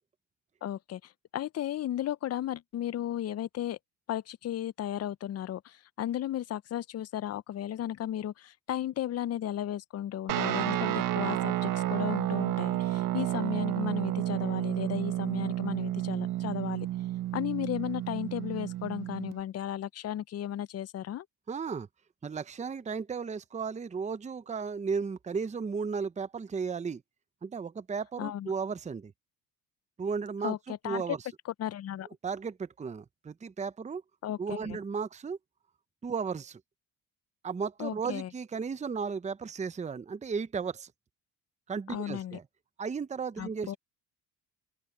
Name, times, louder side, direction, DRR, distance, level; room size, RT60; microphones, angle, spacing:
voice 1, 0.6-3.8 4.1-16.9 17.3-21.3 28.2-28.5 30.4-30.6 30.8-31.0 31.6-32.1 34.2-34.4 34.6-34.8 37.8-38.3 41.9-42.4 43.4-43.8, left 11 dB, 45° left, 0.6 m, -35 dB
Guitar, 10.3-19.4, right 13 dB, 65° right, 1.5 m, -31 dB
voice 2, 21.5-21.9 22.2-27.0 27.4-29.1 30.0-30.6 30.8-31.2 32.2-34.0 34.4-35.4 36.0-36.6 37.4-40.9 41.7-42.4 42.8-43.8, right 5 dB, 20° right, 0.7 m, -34 dB
open air
cardioid pair, 95°, 35 cm